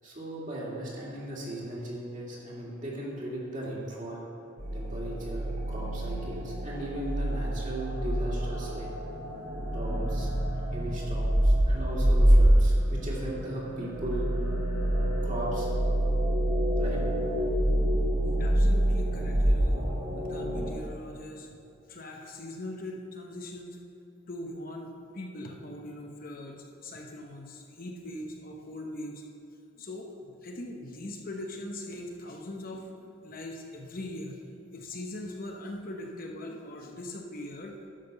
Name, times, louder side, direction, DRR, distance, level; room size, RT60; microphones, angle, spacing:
voice 1, 0.0-4.2 4.7-8.9 9.7-10.3 10.7-14.3 15.2-15.7 16.8-17.0 18.2-18.4, right 1 dB, 40° right, -5 dB, 2.4 m, -37 dB
sound 1, 4.6-20.7, right 1 dB, 60° right, 2.1 m, -26 dB
voice 2, 18.4-19.9 20.2-21.5 21.9-23.8 24.3-29.2 29.8-34.4 34.7-37.8, left 1 dB, 45° left, 1 dB, 0.9 m, -41 dB
11.5 x 5.8 x 6.7 m, 2.7 s
head